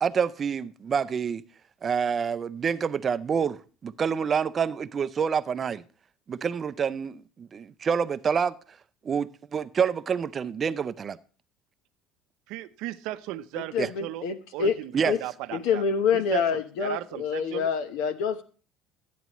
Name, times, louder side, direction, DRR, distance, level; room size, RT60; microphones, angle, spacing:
voice 1, 0.0-1.4 1.8-5.8 6.3-8.5 9.0-11.2 13.8-13.9 14.9-15.2, right 6 dB, 30° right, 0.4 m, -27 dB
voice 2, 12.5-14.2 14.5-15.8 16.1-16.4 16.8-17.7, right 16 dB, 75° right, 0.6 m, -36 dB
voice 3, 13.7-14.8 15.1-15.2 15.5-18.4, left 6 dB, 85° left, 1.0 m, -26 dB
12.5 x 9.4 x 3.0 m
cardioid pair, 145°, 0 cm